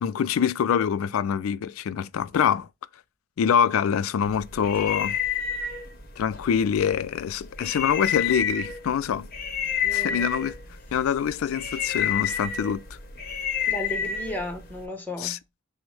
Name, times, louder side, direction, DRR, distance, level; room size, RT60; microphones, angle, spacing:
voice 1, 0.0-2.7 3.4-5.2 6.2-9.3 9.9-10.6 10.9-12.8 15.2-15.4, left 7 dB, 80° left, 0.3 m, -25 dB
sound 1, 4.2-14.9, left 7 dB, 45° left, 0.7 m, -30 dB
voice 2, 7.6-7.9 9.8-10.3 13.7-15.4, left 1 dB, 10° left, 0.9 m, -35 dB
6.0 x 2.1 x 3.2 m
head